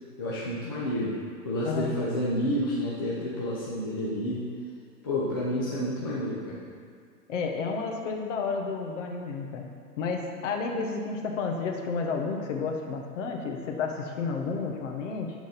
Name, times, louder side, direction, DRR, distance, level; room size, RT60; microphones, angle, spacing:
voice 1, 0.2-1.2 1.4-4.5 5.0-6.6, left 1 dB, 15° left, -7 dB, 0.4 m, -29 dB
voice 2, 1.6-2.0 7.3-9.7 10.0-15.3, left 4 dB, 50° left, 2 dB, 1.3 m, -31 dB
12.0 x 4.0 x 5.7 m, 2.1 s
hypercardioid pair, 140°, 48 cm